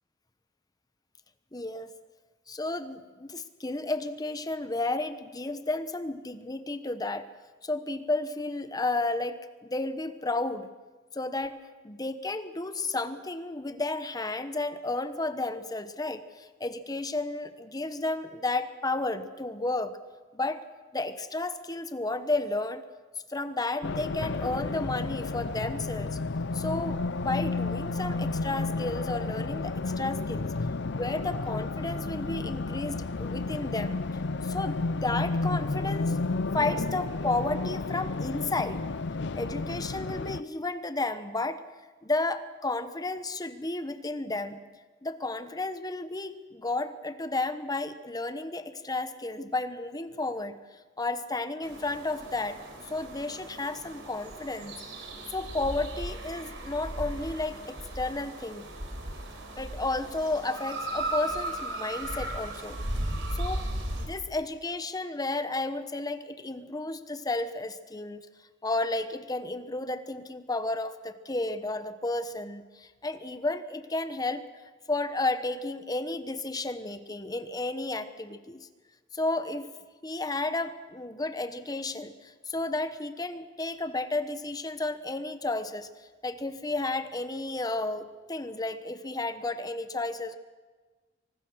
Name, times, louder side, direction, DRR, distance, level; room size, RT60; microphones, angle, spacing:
voice 1, 1.5-1.9 2.5-7.3 7.6-10.7 11.1-19.9 20.3-20.6 20.9-22.8 23.3-26.2 26.5-30.5 30.9-34.0 34.4-36.2 36.5-38.8 39.3-41.6 42.0-44.6 45.0-50.6 51.0-54.8 55.3-58.7 59.6-62.8 63.3-63.7 63.9-68.2 68.6-74.4 74.9-78.7 79.1-79.7 80.0-85.9 86.2-90.4, left 2 dB, 20° left, 11 dB, 1.1 m, -32 dB
Race car auto racing, 23.8-40.4, left 3 dB, 65° left, 0.6 m, -32 dB
sound 1, 51.6-64.1, right 1 dB, 75° right, 4.5 m, -36 dB
25.0 x 19.5 x 6.4 m, 1.3 s
head